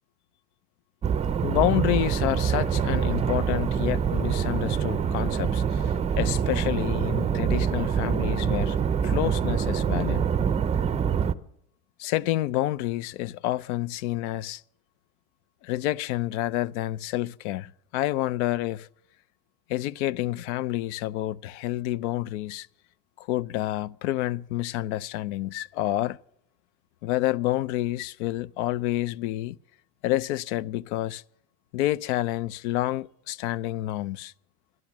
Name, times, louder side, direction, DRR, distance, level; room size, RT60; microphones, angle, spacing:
sound 1, 1.0-11.3, right 7 dB, 20° right, 0.5 m, -25 dB
voice 1, 1.4-8.8 9.0-10.3 12.0-14.6 15.6-18.9 19.7-22.7 23.2-26.2 27.0-29.6 30.0-31.2 31.7-34.3, left 15 dB, 80° left, 0.5 m, -28 dB
12.0 x 12.0 x 7.2 m
supercardioid pair, 115°, 35 cm